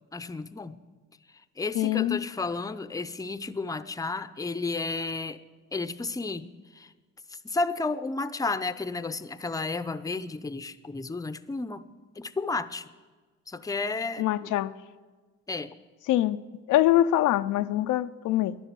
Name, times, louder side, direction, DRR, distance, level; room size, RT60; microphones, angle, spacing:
voice 1, 0.1-0.8 1.3-5.4 5.7-6.9 7.3-11.8 12.2-12.9 13.5-14.5 15.5-15.8, left 3 dB, 10° left, 0.6 m, -32 dB
voice 2, 1.7-2.2 14.2-14.7 16.1-16.4 16.7-18.6, left 13 dB, 90° left, 0.5 m, -24 dB
11.5 x 11.0 x 8.3 m
cardioid pair, 90°, 30 cm